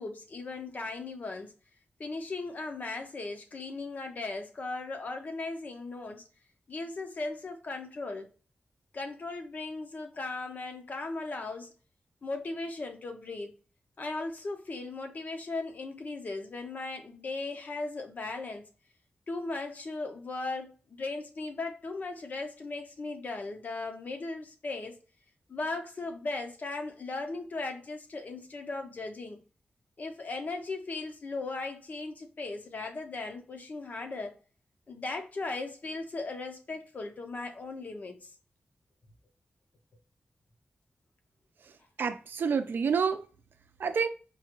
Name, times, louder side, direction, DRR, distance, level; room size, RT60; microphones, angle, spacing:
voice 1, 0.0-1.5 2.0-6.2 6.7-8.3 8.9-11.7 12.2-13.6 14.0-18.6 19.3-24.9 25.5-29.4 30.0-34.3 34.9-38.3, left 3 dB, 50° left, 0.7 m, -37 dB
voice 2, 41.6-43.3 43.8-44.1, right 6 dB, 75° right, 0.4 m, -29 dB
4.7 x 2.4 x 2.9 m
wide cardioid pair, 125°, 4 cm